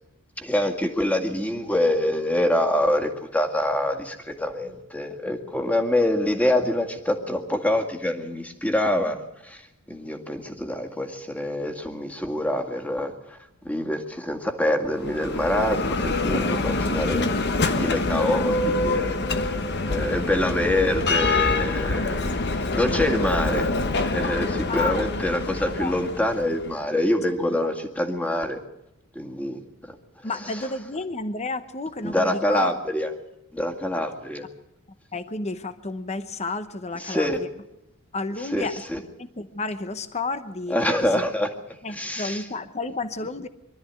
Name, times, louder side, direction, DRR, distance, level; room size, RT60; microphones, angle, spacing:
voice 1, 0.4-9.6 9.9-13.4 13.6-17.3 17.6-22.2 22.7-23.7 24.0-28.6 29.2-30.0 30.5-30.6 32.0-33.1 33.5-34.5 37.0-37.4 38.5-39.0 40.7-41.5 41.9-42.4, left 1 dB, 5° left, 4 dB, 2.0 m, -25 dB
Bell, 14.9-26.7, left 3 dB, 50° left, 1.1 m, -25 dB
voice 2, 24.7-25.1 25.8-25.9 30.2-32.7 35.1-37.5 38.1-38.7 39.2-40.8 41.2-41.3 41.8-43.5, left 3 dB, 30° left, 11 dB, 0.9 m, -31 dB
24.0 x 13.0 x 9.5 m, 0.87 s
head